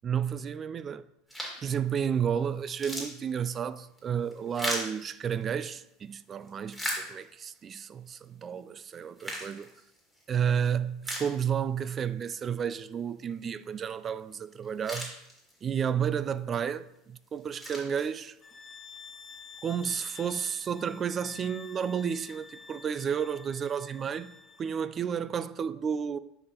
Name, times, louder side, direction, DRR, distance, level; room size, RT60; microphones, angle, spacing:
voice 1, 0.0-1.0 1.6-9.7 10.3-15.1 15.6-18.4 19.6-24.3 24.6-26.2, right 7 dB, 35° right, 0.3 m, -31 dB
sound 1, 1.3-1.7 2.2-2.3 2.6-5.8 6.3-7.6 8.1-8.2 8.9-10.2 10.6-10.7 11.0-11.9 12.2-12.3 14.3-14.4 14.6-15.8 16.4-16.7 17.2-18.5, equal, 5° right, 2.1 m, -38 dB
sound 2, 18.4-24.8, left 5 dB, 25° left, 0.6 m, -49 dB
10.0 x 3.4 x 2.9 m
hypercardioid pair, 85°, 0 cm